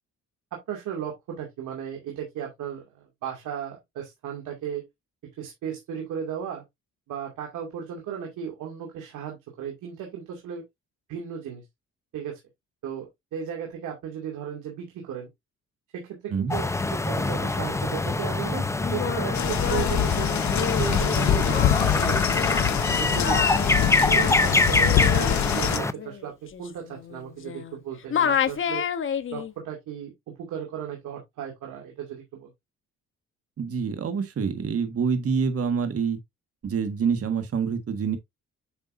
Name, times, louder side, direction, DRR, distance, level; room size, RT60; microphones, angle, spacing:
voice 1, 0.5-4.9 5.4-6.6 7.1-10.6 11.1-11.6 12.1-12.4 12.8-15.3 15.9-20.3 20.6-21.6 22.0-22.2 23.0-23.4 24.1-28.8 29.3-30.1 30.4-32.5, right 8 dB, 85° right, 2.4 m, -35 dB
voice 2, 16.3-16.6 33.6-36.2 36.6-38.2, right 6 dB, 50° right, 1.7 m, -26 dB
sound 1, 16.5-25.9, left 2 dB, 10° left, 0.6 m, -25 dB
Singing, 18.8-27.8 28.1-29.5, left 8 dB, 45° left, 0.9 m, -30 dB
sound 2, 19.3-25.8, left 11 dB, 70° left, 0.9 m, -25 dB
8.5 x 6.0 x 2.6 m
cardioid pair, 90°, 30 cm